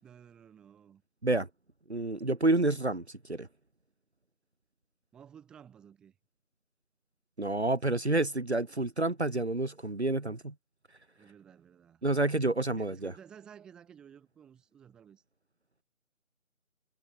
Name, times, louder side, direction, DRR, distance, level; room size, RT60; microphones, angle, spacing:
voice 1, 0.0-1.0 5.1-6.1 11.2-12.1 12.8-15.2, right 8 dB, ahead, 5.4 m, -54 dB
voice 2, 1.9-3.0 3.3-3.5 7.4-10.5 12.0-13.1, right 2 dB, 50° right, 2.9 m, -29 dB
figure-of-eight pair, 170°, 42 cm